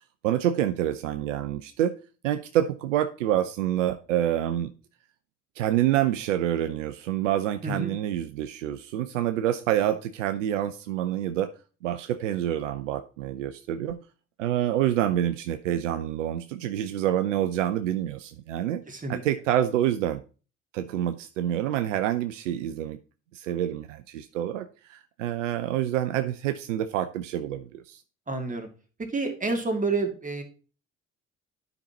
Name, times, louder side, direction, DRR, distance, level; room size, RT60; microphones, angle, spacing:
voice 1, 0.2-1.9 2.2-4.7 5.6-11.5 11.8-14.0 14.4-18.8 19.1-20.2 20.7-23.0 23.3-28.0, right 11 dB, 80° right, 10 dB, 0.5 m, -27 dB
voice 2, 7.6-8.0 18.9-19.2 28.3-28.7 29.0-30.4, right 3 dB, 20° right, 5 dB, 2.0 m, -29 dB
12.0 x 5.3 x 2.9 m, 0.36 s
figure-of-eight pair, 50°, 37 cm